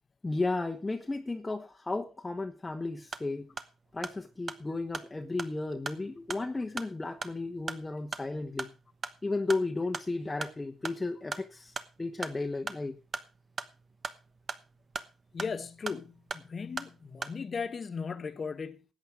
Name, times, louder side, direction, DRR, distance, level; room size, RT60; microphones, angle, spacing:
voice 1, 0.2-3.5 3.9-8.7 9.2-13.0, left 3 dB, 20° left, 1.1 m, -34 dB
sound 1, 2.9-17.4, right 4 dB, 40° right, 1.0 m, -42 dB
voice 2, 15.3-18.8, left 5 dB, 40° left, 1.4 m, -37 dB
13.5 x 8.9 x 4.9 m
cardioid pair, 90°, 0 cm